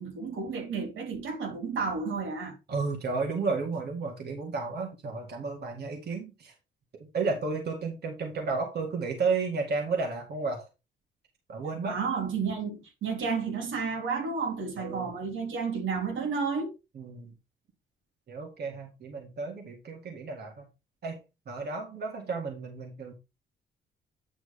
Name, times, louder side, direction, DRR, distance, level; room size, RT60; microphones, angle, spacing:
voice 1, 0.0-2.6 11.8-16.7, right 5 dB, 80° right, 3.1 m, -31 dB
voice 2, 2.7-6.6 7.0-10.7 11.5-12.0 14.8-15.1 16.9-17.3 18.3-20.7 21.0-21.2 21.5-23.1, right 4 dB, 55° right, 2.1 m, -32 dB
9.3 x 6.0 x 3.3 m
cardioid pair, 90°, 20 cm